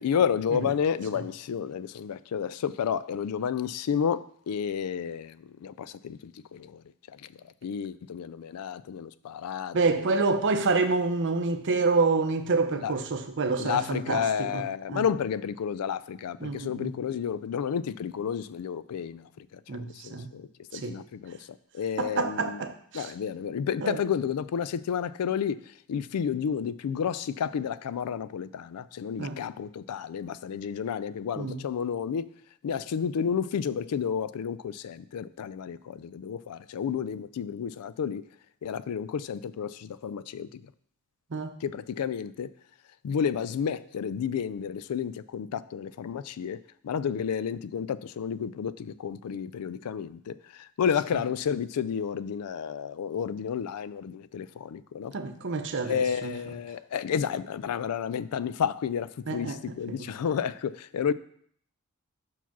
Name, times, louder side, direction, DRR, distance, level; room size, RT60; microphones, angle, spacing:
voice 1, 0.0-6.8 7.1-7.3 7.6-10.1 12.8-12.9 13.6-22.6 22.9-32.3 32.6-38.3 38.6-40.7 41.6-42.5 43.0-55.1 55.8-61.1, left 7 dB, 85° left, 0.4 m, -31 dB
voice 2, 9.7-15.0 16.4-16.9 19.7-20.3 20.7-21.0 22.0-23.1 23.8-24.0 29.2-29.4 31.4-31.6 41.3-41.6 55.1-56.3 59.3-59.6 59.9-60.1, right 4 dB, 55° right, 0.7 m, -28 dB
5.7 x 4.6 x 6.0 m
head